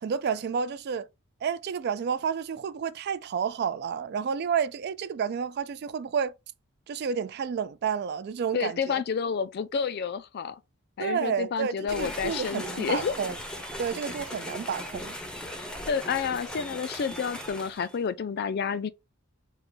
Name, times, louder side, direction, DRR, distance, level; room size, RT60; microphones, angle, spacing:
voice 1, 0.0-1.1 1.4-6.3 6.9-9.0 11.0-13.4 13.8-15.2, right 7 dB, 50° right, 0.3 m, -30 dB
voice 2, 8.5-10.6 11.0-13.1 15.9-18.9, left 6 dB, 50° left, 0.3 m, -30 dB
sound 1, 11.9-18.0, equal, 5° left, 0.6 m, -38 dB
4.0 x 2.2 x 4.3 m
head